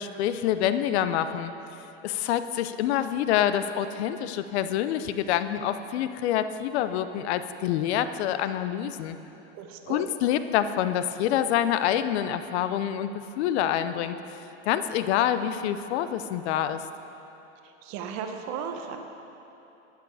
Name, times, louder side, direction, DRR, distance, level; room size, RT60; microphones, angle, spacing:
voice 1, 0.0-1.5 2.0-9.2 9.9-14.2 14.7-16.8, left 10 dB, 75° left, 11 dB, 0.7 m, -26 dB
voice 2, 9.5-10.1 17.6-19.0, right 7 dB, 55° right, 4 dB, 1.3 m, -35 dB
12.0 x 9.5 x 4.8 m, 3.0 s
supercardioid pair, 125°, 33 cm